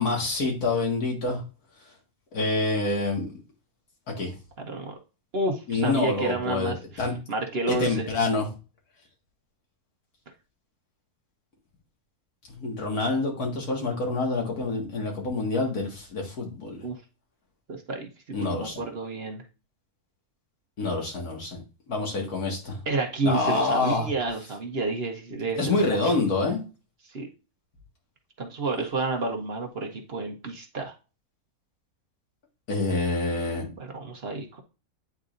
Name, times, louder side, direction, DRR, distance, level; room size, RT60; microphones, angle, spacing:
voice 1, 0.0-1.4 2.3-3.3 4.2-4.3 5.7-7.1 7.7-8.5 12.5-16.8 18.3-18.8 20.8-21.6 21.9-22.8 23.2-24.1 25.6-26.6 32.7-33.7, left 3 dB, 80° left, 0 dB, 2.3 m, -27 dB
voice 2, 4.6-4.9 5.3-8.0 16.8-17.0 17.7-19.4 22.9-26.0 27.1-27.3 28.4-30.9 33.8-34.6, right 3 dB, 50° right, 2 dB, 1.0 m, -30 dB
9.5 x 4.0 x 2.5 m, 0.33 s
omnidirectional pair, 1.6 m